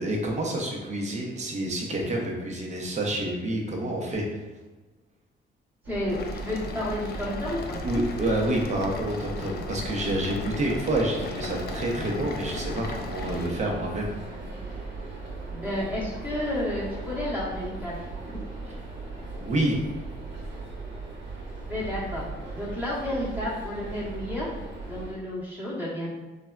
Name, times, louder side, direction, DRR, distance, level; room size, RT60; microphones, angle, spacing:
voice 1, 0.0-4.4 7.8-14.1 19.4-19.7, right 1 dB, 35° right, -1 dB, 0.7 m, -28 dB
sound 1, 5.8-25.1, right 3 dB, 65° right, 1.1 m, -38 dB
voice 2, 5.9-7.8 15.5-18.0 18.3-18.4 21.7-22.2 22.5-24.5 24.9-26.1, left 1 dB, 10° right, -8 dB, 1.0 m, -31 dB
sound 2, 6.1-13.5, left 3 dB, 55° left, 0.4 m, -38 dB
3.3 x 2.2 x 2.3 m, 1.2 s
cardioid pair, 90°, 20 cm